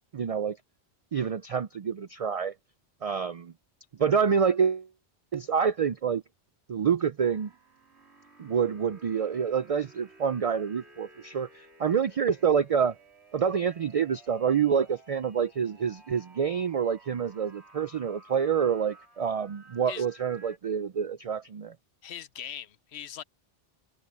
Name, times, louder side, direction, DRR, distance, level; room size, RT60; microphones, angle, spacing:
voice 1, 0.1-0.6 1.1-2.5 3.0-3.5 4.0-4.9 5.3-6.2 6.7-7.5 8.4-12.9 13.3-21.7, right 7 dB, 50° right, 0.4 m, -27 dB
sound 1, 7.2-20.6, right 2 dB, 75° right, 3.6 m, -56 dB
voice 2, 22.0-23.2, left 10 dB, 75° left, 1.0 m, -40 dB
omnidirectional pair, 1.1 m